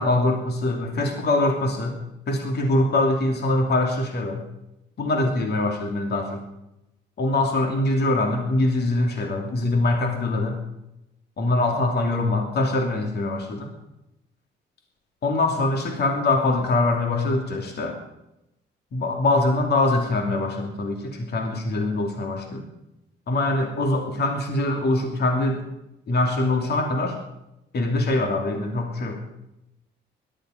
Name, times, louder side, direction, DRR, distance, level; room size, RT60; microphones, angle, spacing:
voice 1, 0.0-2.0 2.3-4.4 5.0-6.4 7.2-10.6 11.4-13.7 15.2-18.0 18.9-22.6 23.3-25.6 26.1-27.2 27.7-29.2, left 2 dB, 55° left, 3 dB, 2.8 m, -23 dB
17.0 x 12.5 x 5.2 m, 0.88 s
cardioid pair, 90°, 20 cm